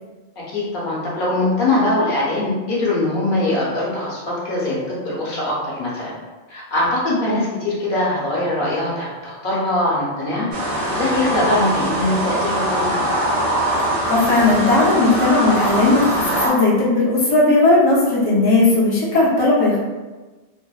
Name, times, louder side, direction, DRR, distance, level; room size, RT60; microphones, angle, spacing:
voice 1, 0.5-6.1 6.5-10.5 10.9-12.9, left 1 dB, 55° left, -6 dB, 0.8 m, -22 dB
sound 1, 10.5-16.5, right 1 dB, 85° right, 0.9 m, -22 dB
voice 2, 14.0-19.8, left 2 dB, 35° left, -7 dB, 0.4 m, -16 dB
2.6 x 2.0 x 2.2 m, 1.3 s
omnidirectional pair, 1.1 m